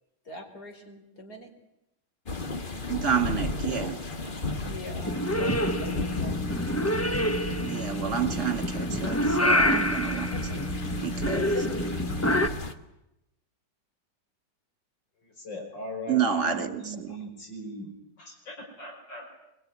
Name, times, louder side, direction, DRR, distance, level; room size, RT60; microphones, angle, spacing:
voice 1, 0.2-1.5 4.2-6.5 10.3-10.6 11.3-11.7, left 2 dB, 60° left, 4 dB, 4.9 m, -42 dB
sound 1, 2.3-12.7, left 3 dB, 30° left, 1.5 m, -34 dB
voice 2, 2.9-4.0 7.6-10.3 11.0-11.5 16.1-17.2, right 8 dB, 40° right, 7 dB, 2.6 m, -29 dB
Purr / Meow, 5.0-12.5, equal, 10° left, 0.8 m, -27 dB
voice 3, 15.4-17.9 18.2-19.3, equal, 85° left, 0 dB, 6.2 m, -39 dB
24.5 x 23.5 x 9.7 m, 0.90 s
omnidirectional pair, 1.9 m